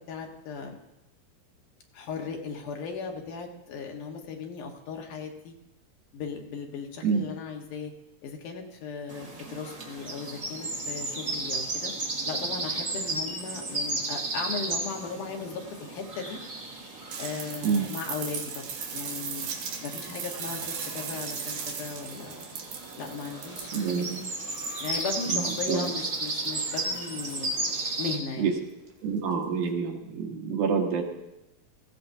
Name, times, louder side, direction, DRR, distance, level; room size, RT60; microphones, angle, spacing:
voice 1, 0.1-0.8 1.9-5.5 6.1-7.9 8.2-11.9 12.3-16.4 17.2-19.5 19.8-22.4 23.0-24.1 24.8-27.5 28.0-28.5, left 5 dB, 70° left, 2 dB, 2.7 m, -37 dB
sound 1, 9.1-28.2, right 2 dB, 35° right, 1.6 m, -34 dB
sound 2, 17.1-27.5 28.9-29.0, right 6 dB, 85° right, 3.4 m, -38 dB
voice 2, 23.7-24.2 25.3-25.9 28.4-28.5 29.0-31.0, right 6 dB, 70° right, 1 dB, 2.8 m, -27 dB
18.5 x 15.5 x 2.7 m, 0.95 s
omnidirectional pair, 3.9 m